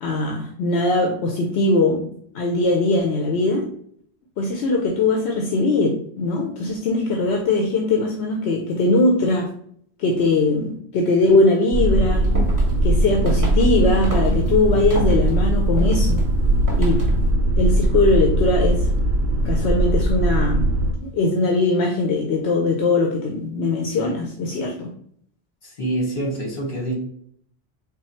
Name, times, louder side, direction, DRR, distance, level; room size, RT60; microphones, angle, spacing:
voice 1, 0.0-2.1 2.3-3.7 4.4-9.5 10.0-12.3 12.8-16.2 16.8-17.1 17.6-18.9 19.4-20.6 21.0-24.9, left 2 dB, 80° left, 1 dB, 0.9 m, -20 dB
sound 1, 11.7-20.9, right 1 dB, 70° right, 0.8 m, -20 dB
sound 2, 12.1-17.3, left 1 dB, 20° right, 0.9 m, -33 dB
voice 2, 25.6-27.0, right 1 dB, 55° left, -2 dB, 1.6 m, -26 dB
3.7 x 2.3 x 4.2 m, 0.64 s
omnidirectional pair, 1.1 m